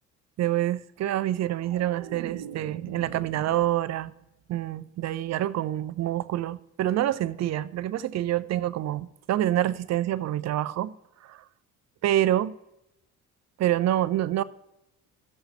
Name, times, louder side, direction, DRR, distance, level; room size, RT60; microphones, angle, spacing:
voice 1, 0.4-4.1 4.5-10.9 11.2-11.4 12.0-12.5 13.6-14.4, right 13 dB, 40° right, 0.5 m, -27 dB
sound 1, 1.1-4.3 4.7-5.0, right 9 dB, 60° right, 0.8 m, -43 dB
15.0 x 6.4 x 3.1 m
hypercardioid pair, 55°, 43 cm